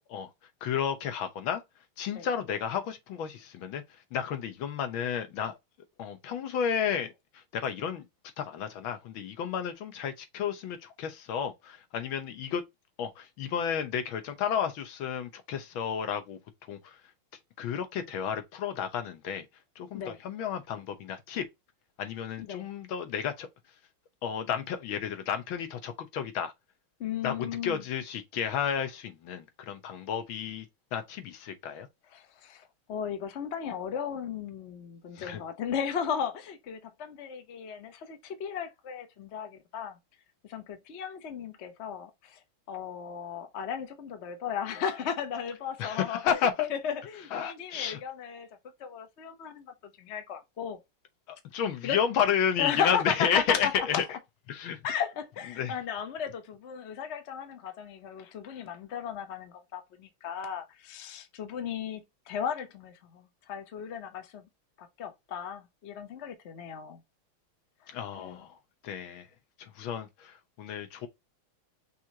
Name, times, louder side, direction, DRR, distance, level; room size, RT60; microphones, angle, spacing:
voice 1, 0.6-1.6 2.0-3.8 4.1-5.6 6.0-8.0 8.4-12.6 13.0-16.4 16.7-17.0 17.6-19.5 19.8-21.5 22.0-23.5 24.2-26.5 27.2-30.7 30.9-31.9 35.1-35.4 45.8-46.7 47.3-48.0 51.3-54.0 54.5-54.8 55.5-55.7 67.9-68.6 68.8-69.3 69.6-71.1, left 8 dB, 70° left, 1.7 m, -32 dB
voice 2, 27.0-27.8 32.1-40.0 40.4-42.4 42.7-46.4 46.7-48.5 48.8-50.8 51.8-52.0 52.6-54.0 54.8-64.5 64.8-67.0 67.8-68.4, left 8 dB, 50° left, 0.8 m, -35 dB
6.1 x 3.0 x 2.7 m
omnidirectional pair, 2.3 m